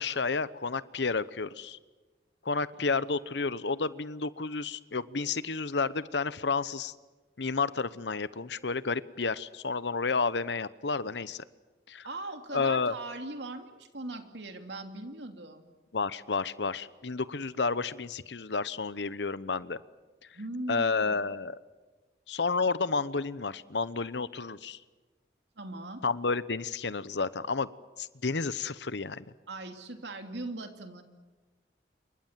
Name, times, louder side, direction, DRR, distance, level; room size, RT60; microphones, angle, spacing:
voice 1, 0.0-1.8 2.4-6.9 7.4-11.4 11.9-12.1 12.5-12.9 15.9-19.8 20.7-21.6 22.3-24.8 26.0-27.7 28.0-29.2, left 4 dB, 85° left, 16 dB, 0.9 m, -31 dB
voice 2, 12.0-15.6 20.3-21.2 25.6-26.0 29.5-31.0, right 2 dB, 85° right, 6 dB, 2.8 m, -40 dB
28.5 x 24.0 x 7.5 m, 1.3 s
head